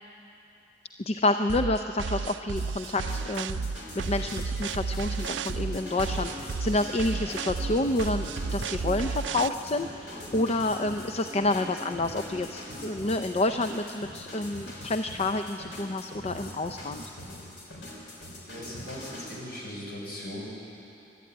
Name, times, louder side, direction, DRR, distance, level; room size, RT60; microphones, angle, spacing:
voice 1, 1.1-3.6 4.0-17.0, left 2 dB, 35° left, 7 dB, 0.5 m, -29 dB
sound 1, 1.5-9.5, right 5 dB, 80° right, 0.4 m, -32 dB
sound 2, 2.6-19.4, left 1 dB, 80° left, 3.9 m, -43 dB
Human voice / Acoustic guitar, 5.2-13.2, equal, 10° right, 6.0 m, -45 dB
voice 2, 18.4-20.5, left 1 dB, 55° left, -4 dB, 6.0 m, -39 dB
23.0 x 12.0 x 9.3 m, 2.9 s
head